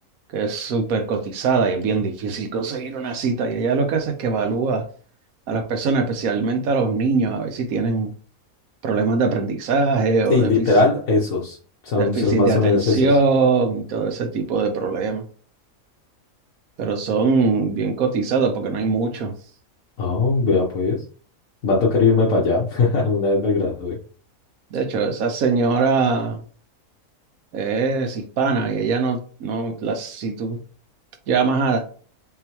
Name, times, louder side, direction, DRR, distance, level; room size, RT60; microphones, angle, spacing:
voice 1, 0.3-4.9 5.5-8.1 8.8-10.7 11.9-15.3 16.8-19.3 24.7-26.4 27.5-30.6 31.3-31.9, right 4 dB, 90° right, 1.2 m, -22 dB
voice 2, 10.3-11.6 11.8-13.1 20.0-21.0 21.6-24.0, left 3 dB, 70° left, 1.4 m, -19 dB
3.8 x 3.8 x 2.9 m
omnidirectional pair, 1.5 m